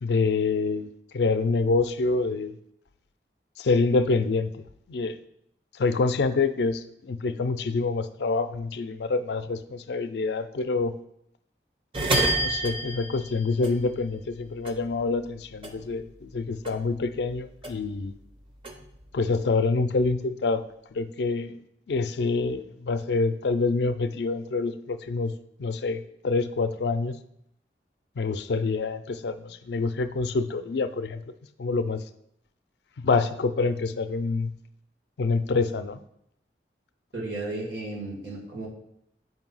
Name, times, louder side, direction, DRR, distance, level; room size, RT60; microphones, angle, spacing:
voice 1, 0.0-2.5 3.6-4.5 4.9-5.2 5.8-10.9 12.1-18.1 19.1-20.6 20.9-21.5 21.9-25.3 25.6-27.2 28.2-31.2 31.6-32.0 33.0-34.5 35.2-36.0, left 3 dB, 75° left, 11 dB, 0.4 m, -26 dB
sound 1, 11.9-14.4 14.6-16.4 16.6-18.1 18.4-19.6, right 1 dB, 30° right, 0.6 m, -29 dB
voice 2, 37.1-38.7, right 2 dB, 85° right, -3 dB, 2.1 m, -34 dB
7.6 x 2.7 x 5.4 m, 0.75 s
head